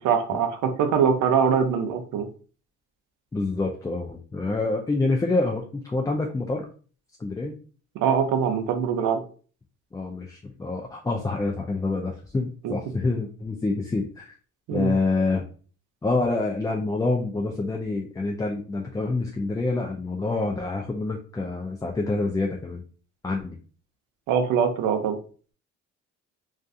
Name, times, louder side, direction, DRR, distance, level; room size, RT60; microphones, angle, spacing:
voice 1, 0.0-2.3 8.0-9.2 12.6-12.7 14.7-14.9 24.3-25.2, right 7 dB, 85° right, 6 dB, 0.6 m, -23 dB
voice 2, 3.3-6.7 7.2-7.6 9.9-14.3 14.7-15.4 16.0-22.8 23.2-23.6, left 3 dB, 10° left, 1 dB, 0.3 m, -27 dB
2.4 x 2.3 x 2.5 m, 0.40 s
cardioid pair, 90°, 30 cm